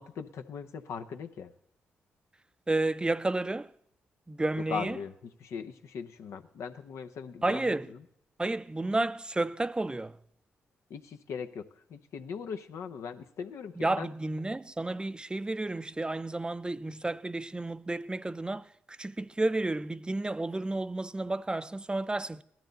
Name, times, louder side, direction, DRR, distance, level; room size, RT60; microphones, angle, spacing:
voice 1, 0.0-1.5 4.7-7.7 10.9-14.1, left 6 dB, 75° left, 0.9 m, -39 dB
voice 2, 2.7-3.7 4.3-5.0 7.4-7.9 8.4-10.2 13.8-22.4, right 2 dB, 20° right, 0.6 m, -31 dB
16.5 x 12.5 x 4.0 m
supercardioid pair, 55°, 5 cm